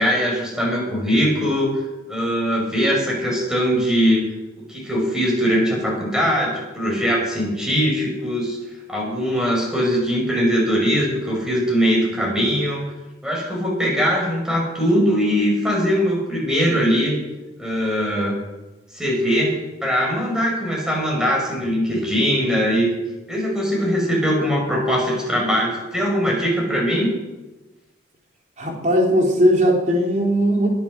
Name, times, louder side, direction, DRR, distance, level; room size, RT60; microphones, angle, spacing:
voice 1, 0.0-1.8 2.1-4.2 4.7-8.6 8.9-12.8 13.2-17.2 17.6-18.4 18.9-19.5 19.8-22.9 23.3-27.1, equal, 5° right, -2 dB, 5.8 m, -21 dB
voice 2, 28.6-30.7, equal, 40° right, -1 dB, 4.0 m, -18 dB
21.5 x 9.5 x 6.5 m, 1.1 s
head